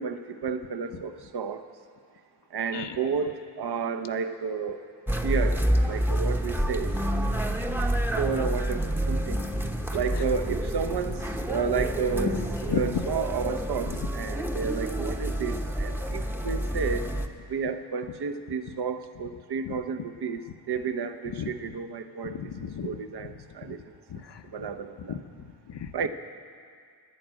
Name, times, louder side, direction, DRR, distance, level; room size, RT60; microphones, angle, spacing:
voice 1, 0.0-1.6 2.5-4.8 5.2-6.9 8.2-9.4 9.9-11.2 11.5-17.1 17.5-20.4 20.7-22.3 22.8-23.8 24.5-25.2 25.9-26.1, right 6 dB, 55° right, 9 dB, 0.9 m, -31 dB
sound 1, 5.1-17.3, equal, 5° right, 0.9 m, -28 dB
voice 2, 12.7-13.0 19.7-19.8 21.4-21.5 22.2-22.9 23.2-23.3 24.1-24.2 25.1-25.2 25.7-25.9, left 8 dB, 60° left, 9 dB, 0.9 m, -32 dB
12.0 x 10.5 x 8.9 m, 2.3 s
cardioid pair, 70°, 48 cm